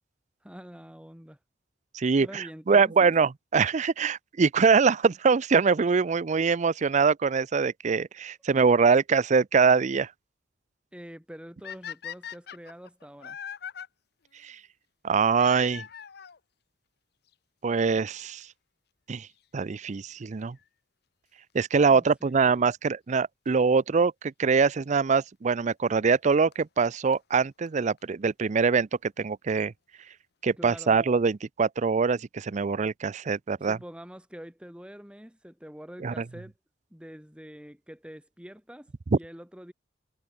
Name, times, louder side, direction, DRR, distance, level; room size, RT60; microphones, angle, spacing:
voice 1, 0.4-1.4 2.2-3.1 10.9-13.4 21.9-22.7 30.6-31.0 33.6-36.5 36.9-39.7, equal, 5° right, 3.4 m, -45 dB
voice 2, 1.9-10.1 14.4-14.6 15.0-15.8 17.6-18.5 19.1-19.3 19.5-20.6 21.5-29.7 30.4-33.8 36.0-36.2, right 5 dB, 40° right, 0.5 m, -23 dB
sound 1, 11.6-13.9 15.3-16.4 17.3-17.4 18.1-18.2 18.4-18.5 20.4-20.6 23.5-23.6 24.6-24.7 26.1-26.2 26.5-26.6 26.8-26.9 27.1-27.2 27.4-27.5 27.7-27.8 28.0-28.1, left 8 dB, 60° left, 0.8 m, -41 dB
head